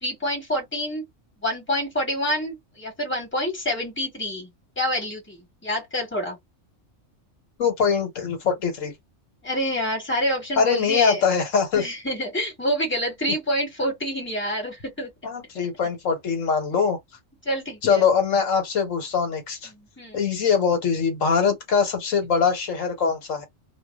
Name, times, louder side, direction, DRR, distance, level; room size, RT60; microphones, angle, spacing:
voice 1, 0.0-1.1 1.4-4.5 4.8-6.4 9.4-11.2 11.7-15.1 17.4-18.0 19.7-20.2, equal, 10° left, 1.3 m, -27 dB
voice 2, 7.6-8.9 10.6-11.8 15.2-17.0 17.8-19.7 20.1-23.5, left 6 dB, 75° left, 1.2 m, -22 dB
2.5 x 2.2 x 2.3 m
omnidirectional pair, 1.4 m